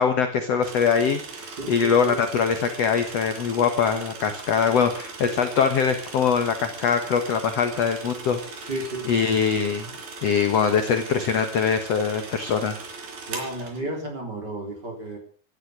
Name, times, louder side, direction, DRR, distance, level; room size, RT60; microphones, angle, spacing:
voice 1, 0.0-8.7 9.1-9.9 10.2-12.8, left 6 dB, 65° left, 7 dB, 1.6 m, -23 dB
sound 1, 0.6-13.8, right 4 dB, 65° right, 5.3 m, -39 dB
voice 2, 1.5-2.2 8.7-9.3 13.3-15.2, right 1 dB, 25° right, 3 dB, 3.7 m, -33 dB
17.5 x 13.0 x 6.3 m, 0.43 s
omnidirectional pair, 4.9 m